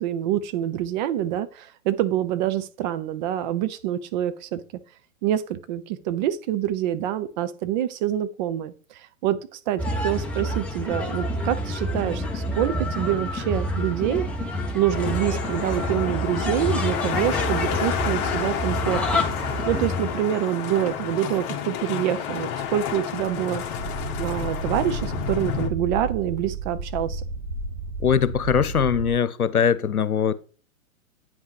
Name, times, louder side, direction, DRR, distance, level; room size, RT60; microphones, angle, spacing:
voice 1, 0.0-4.6 5.2-14.2 14.7-19.3 19.6-23.6 24.2-27.2, right 11 dB, 30° right, 0.8 m, -26 dB
sound 1, 9.8-20.1, left 1 dB, 5° left, 1.1 m, -28 dB
sound 2, 14.9-25.7, left 8 dB, 35° left, 1.6 m, -30 dB
sound 3, 23.8-29.1, right 3 dB, 80° right, 5.7 m, -32 dB
voice 2, 28.0-30.3, left 7 dB, 85° left, 0.9 m, -21 dB
9.1 x 5.7 x 4.8 m
figure-of-eight pair, 120°, 43 cm